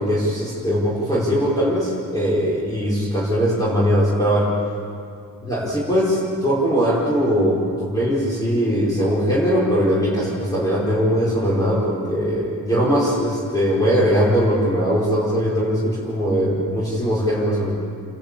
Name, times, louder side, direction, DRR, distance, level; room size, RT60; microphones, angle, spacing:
voice 1, 0.0-4.5 5.4-17.7, equal, 10° left, -8 dB, 5.2 m, -20 dB
29.5 x 12.0 x 8.5 m, 2.4 s
wide cardioid pair, 130°, 33 cm